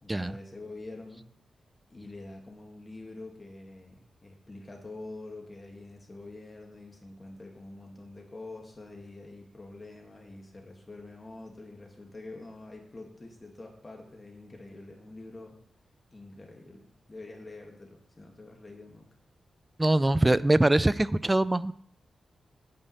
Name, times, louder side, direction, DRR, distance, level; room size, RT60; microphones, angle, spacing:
voice 1, 0.0-1.2 1.9-15.6 16.1-19.1, left 2 dB, 25° left, 1 dB, 2.2 m, -46 dB
voice 2, 19.8-21.7, right 1 dB, 15° right, 17 dB, 0.4 m, -23 dB
9.1 x 5.4 x 8.0 m, 0.63 s
cardioid pair, 95°, 0 cm